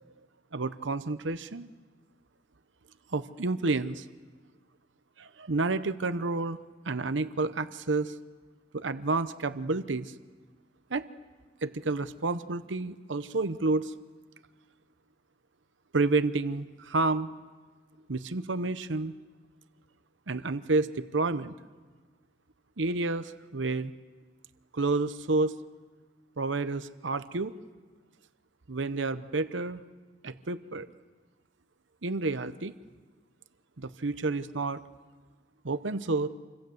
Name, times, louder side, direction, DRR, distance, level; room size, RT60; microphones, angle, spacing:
voice 1, 0.5-1.7 3.1-4.1 5.2-6.6 6.8-8.1 8.7-10.1 10.9-11.1 11.6-13.9 15.9-17.3 18.1-19.2 20.3-21.6 22.8-23.9 24.7-25.6 26.4-27.5 28.7-29.8 30.2-30.9 32.0-32.7 33.8-34.8 35.6-36.3, right 3 dB, 80° right, 12 dB, 0.9 m, -30 dB
28.0 x 26.0 x 7.9 m, 1.4 s
head